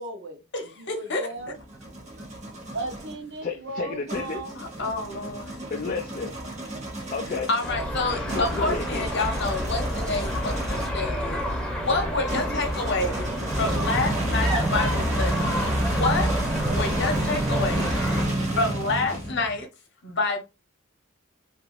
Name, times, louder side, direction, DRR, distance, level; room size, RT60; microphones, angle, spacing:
voice 1, 0.0-1.6 2.7-4.6, right 2 dB, 60° right, 0.8 m, -36 dB
voice 2, 0.5-1.3 4.6-5.7 7.5-13.3 13.6-15.5 15.9-18.0 18.6-19.7 20.0-20.4, left 3 dB, 55° left, 0.8 m, -28 dB
sound 1, 1.4-3.2 4.1-11.1 12.3-19.6, right 1 dB, 35° right, 0.9 m, -30 dB
voice 3, 3.4-4.5 5.7-6.3 7.1-7.5 8.3-9.1 11.0-11.1 19.1-19.2, left 4 dB, 40° left, 0.3 m, -32 dB
sound 2, 7.6-18.2, equal, 5° left, 0.7 m, -29 dB
2.9 x 2.5 x 2.9 m
head